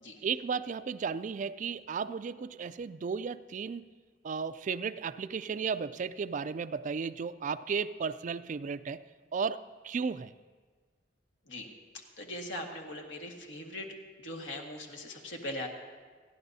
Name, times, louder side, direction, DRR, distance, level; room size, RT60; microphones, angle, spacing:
voice 1, 0.2-3.9 4.2-9.0 9.3-10.3, right 5 dB, 45° right, 13 dB, 0.3 m, -34 dB
voice 2, 12.2-13.9 14.2-15.7, left 1 dB, 75° left, 1 dB, 1.8 m, -40 dB
30.0 x 11.0 x 2.7 m, 1.5 s
head